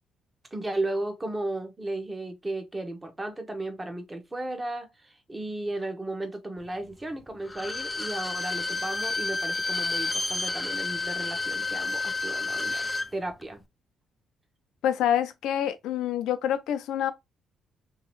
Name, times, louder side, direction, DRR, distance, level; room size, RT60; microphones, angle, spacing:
voice 1, 0.5-13.6, right 2 dB, 20° right, 0.9 m, -35 dB
Bowed string instrument, 7.4-13.1 13.4-13.5, left 3 dB, 15° left, 0.4 m, -30 dB
voice 2, 14.8-17.1, left 10 dB, 85° left, 0.4 m, -26 dB
2.9 x 2.8 x 3.0 m
cardioid pair, 90°, 0 cm